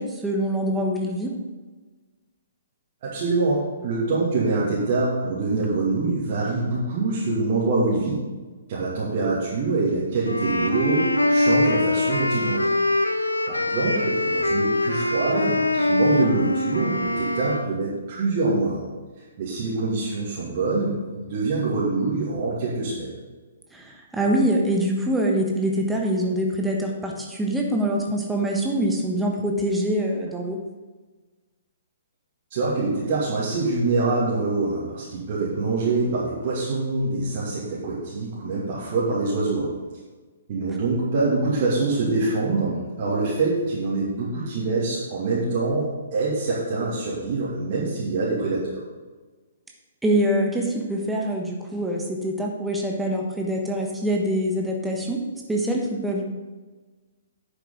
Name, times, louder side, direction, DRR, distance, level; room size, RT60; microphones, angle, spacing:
voice 1, 0.0-1.3 23.7-30.6 50.0-55.2 55.5-56.2, right 1 dB, 5° right, 0 dB, 1.3 m, -24 dB
voice 2, 3.0-8.2 8.7-12.6 13.1-18.8 19.4-23.1 32.5-39.7 40.5-48.8, right 3 dB, 45° right, -7 dB, 2.6 m, -25 dB
sound 1, 10.2-17.7, left 1 dB, 80° left, 0.8 m, -23 dB
10.5 x 8.2 x 3.9 m, 1.3 s
figure-of-eight pair, 125°, 0 cm